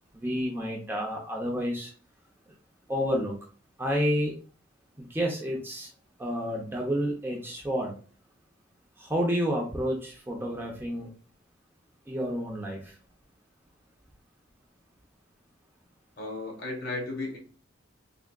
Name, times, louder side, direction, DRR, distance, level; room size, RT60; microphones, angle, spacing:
voice 1, 0.1-1.9 2.9-3.4 3.8-4.4 5.0-5.9 6.2-7.9 9.0-11.1 12.1-12.9, equal, 10° right, -1 dB, 0.6 m, -30 dB
voice 2, 16.2-17.4, left 2 dB, 50° left, 0 dB, 1.1 m, -34 dB
3.6 x 3.4 x 2.3 m, 0.38 s
head